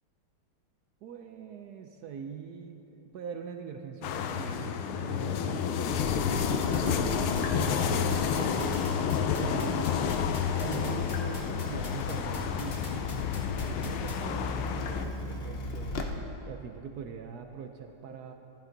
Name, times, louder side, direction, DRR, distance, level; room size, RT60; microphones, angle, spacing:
voice 1, 1.0-7.3 7.5-9.9 10.5-13.1 13.6-16.0 16.5-18.3, right 7 dB, 80° right, 5 dB, 0.8 m, -42 dB
sound 1, 4.0-15.1, left 7 dB, 80° left, 1.5 m, -30 dB
Water tap faucet / Drip, 5.9-16.0, left 3 dB, 65° left, 0.6 m, -37 dB
sound 2, 6.4-14.2, left 3 dB, 40° left, 2.0 m, -44 dB
15.0 x 12.5 x 3.9 m, 3.0 s
omnidirectional pair, 2.4 m